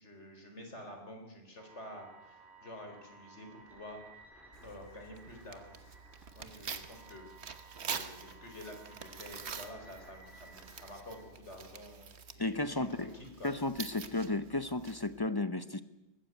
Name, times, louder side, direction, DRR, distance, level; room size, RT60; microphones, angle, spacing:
voice 1, 0.0-4.1 4.6-5.8 6.4-7.3 7.8-13.5, left 1 dB, 85° left, 4 dB, 4.4 m, -49 dB
sound 1, 1.6-11.2, right 3 dB, ahead, 4.5 m, -57 dB
Tearing, 4.5-15.3, right 6 dB, 70° right, 1.4 m, -46 dB
voice 2, 12.4-13.1 13.4-15.8, left 2 dB, 25° left, 13 dB, 0.7 m, -33 dB
19.5 x 15.0 x 9.3 m, 0.99 s
omnidirectional pair, 1.2 m